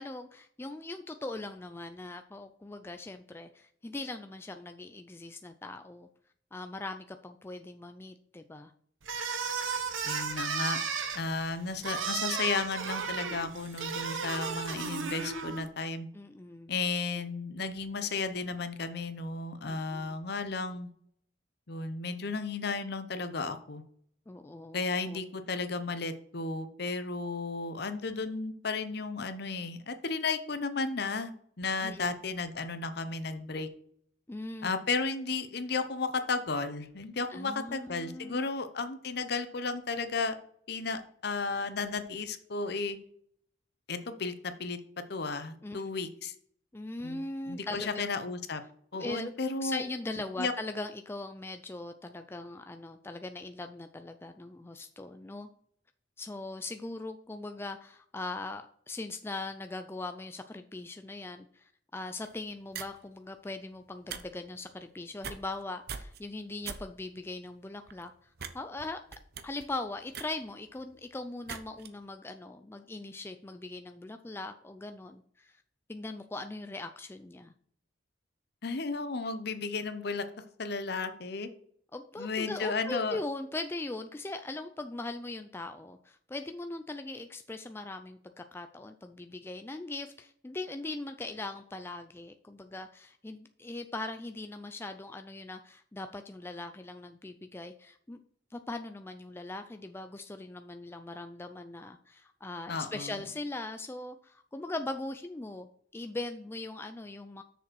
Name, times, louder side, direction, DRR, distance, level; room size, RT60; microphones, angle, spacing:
voice 1, 0.0-6.1 6.5-8.7 16.1-16.7 19.6-20.2 24.3-25.2 31.8-32.1 34.3-34.7 37.3-38.5 45.6-45.8 46.7-48.1 48.9-49.3 49.6-55.5 56.2-68.1 68.5-69.0 69.4-75.6 75.9-77.5 81.9-98.2 98.5-105.7 105.9-107.4, left 2 dB, 10° left, 7 dB, 0.3 m, -40 dB
sound 1, 9.0-15.7, right 5 dB, 90° right, 1.1 m, -34 dB
voice 2, 10.0-10.8 11.1-16.1 16.7-20.9 21.7-23.8 24.7-31.3 31.6-33.7 34.6-40.3 40.7-43.0 43.9-44.8 45.1-46.3 47.0-47.2 47.5-48.6 48.9-49.8 50.4-50.5 78.6-80.2 80.6-81.5 82.2-83.2 102.7-103.2, left 4 dB, 55° left, 10 dB, 0.8 m, -34 dB
sound 2, 62.2-62.4 62.7-63.0 63.9-64.2 64.5-64.7 65.2-65.6 65.9-66.2 66.6-66.8 67.2-67.3 67.9-68.1 68.4-68.5 68.8-71.0 71.5-71.9, right 7 dB, 55° right, 0.7 m, -41 dB
6.7 x 5.1 x 6.2 m, 0.64 s
head